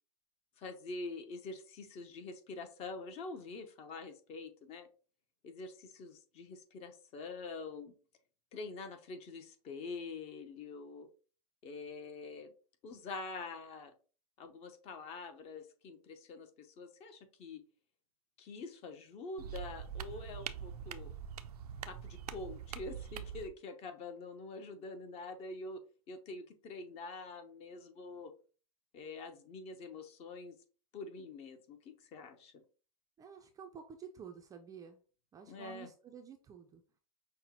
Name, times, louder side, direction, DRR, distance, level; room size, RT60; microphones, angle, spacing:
voice 1, 0.6-4.9 5.4-7.9 8.5-11.1 11.6-12.5 12.8-13.9 14.4-17.6 18.4-21.1 21.8-25.8 26.1-28.3 28.9-30.6 30.9-32.6 35.5-35.9, left 3 dB, 35° left, 8 dB, 0.7 m, -46 dB
sound 1, 19.4-23.5, right 8 dB, 85° right, 0.4 m, -44 dB
voice 2, 33.2-35.0 35.3-36.8, right 7 dB, 20° right, 5 dB, 0.4 m, -51 dB
5.6 x 2.1 x 2.8 m, 0.37 s
hypercardioid pair, 115°, 19 cm